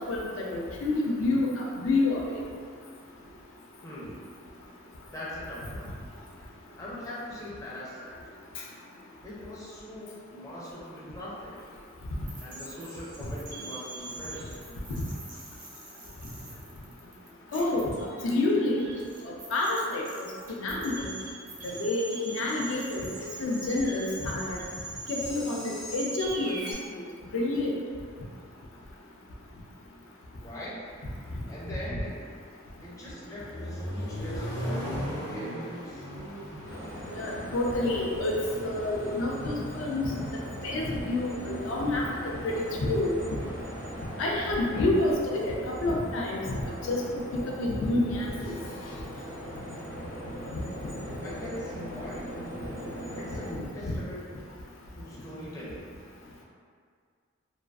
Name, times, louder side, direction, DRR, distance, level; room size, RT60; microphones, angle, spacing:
voice 1, 0.1-2.2 17.5-17.9 18.2-18.8 19.5-20.0 20.6-21.1 21.8-23.0 23.4-24.6 25.1-26.6 27.3-27.7 37.1-38.3 38.6-40.1 40.6-42.0 42.4-43.1 44.2-46.4 46.9-47.0 47.6-48.5, left 2 dB, 80° left, -2 dB, 0.4 m, -28 dB
voice 2, 3.8-4.2 5.1-5.9 6.8-8.1 9.2-11.6 12.4-14.5 30.4-30.8 31.5-32.2 32.8-36.1 51.2-52.3 53.1-54.4 55.0-55.8, left 1 dB, 15° left, -8 dB, 0.4 m, -41 dB
sound 1, 12.3-26.7, right 2 dB, 45° right, 0.5 m, -42 dB
Accelerating revving vroom, 32.9-38.9, equal, 60° left, 0.7 m, -37 dB
sound 2, 36.6-53.5, equal, 75° right, 0.8 m, -39 dB
2.4 x 2.3 x 2.2 m, 2.1 s
head